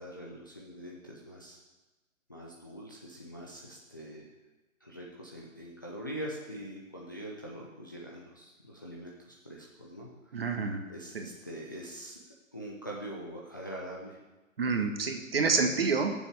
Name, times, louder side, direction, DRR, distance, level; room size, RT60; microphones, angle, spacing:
voice 1, 0.0-1.6 2.3-4.3 4.8-10.5 10.9-12.2 12.5-14.2, equal, 15° left, -4 dB, 0.5 m, -43 dB
voice 2, 10.3-10.8 11.1-11.2 14.6-16.1, right 4 dB, 45° right, 4 dB, 1.5 m, -28 dB
20.0 x 7.2 x 3.4 m, 1.1 s
figure-of-eight pair, 145°, 40 cm